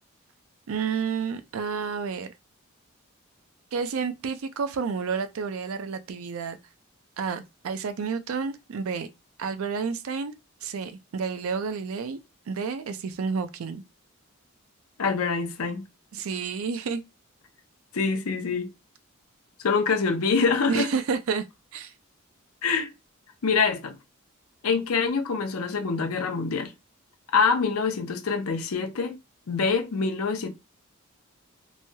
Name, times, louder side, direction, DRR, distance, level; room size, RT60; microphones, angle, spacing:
voice 1, 0.7-2.3 3.7-6.6 7.2-9.1 9.4-10.3 10.6-12.2 12.5-13.8 16.1-17.0 20.7-21.5 21.7-21.9, right 5 dB, 75° right, 0.4 m, -30 dB
voice 2, 15.0-15.8 17.9-18.7 19.6-20.9 22.6-22.9 23.4-24.0 24.6-26.7 27.3-29.2 29.5-30.5, left 5 dB, 85° left, 0.6 m, -25 dB
3.0 x 2.2 x 2.7 m
head